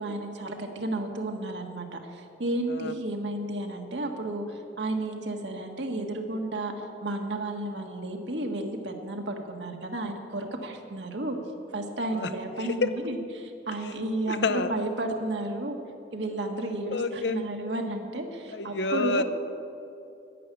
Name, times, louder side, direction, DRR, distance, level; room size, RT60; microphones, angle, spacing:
voice 1, 0.0-6.7 7.0-11.4 11.7-15.8 16.1-19.2, right 2 dB, 80° right, 3 dB, 1.6 m, -32 dB
voice 2, 14.3-14.7 16.9-17.4 18.5-19.2, left 3 dB, 75° left, 10 dB, 0.8 m, -28 dB
11.0 x 10.5 x 8.3 m, 2.7 s
head